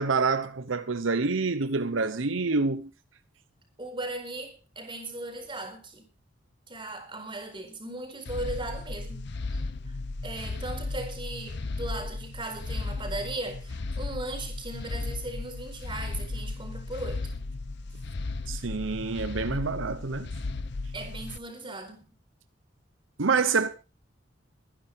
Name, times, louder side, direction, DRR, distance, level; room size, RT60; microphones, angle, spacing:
voice 1, 0.0-2.9 18.5-20.3 23.2-23.7, right 4 dB, 85° right, 0.9 m, -27 dB
voice 2, 3.8-6.0 6.7-9.3 10.2-17.3 20.9-22.0, right 2 dB, 25° right, 4.5 m, -37 dB
sound 1, 8.3-21.4, left 3 dB, 60° left, 0.7 m, -35 dB
22.5 x 10.5 x 3.6 m
head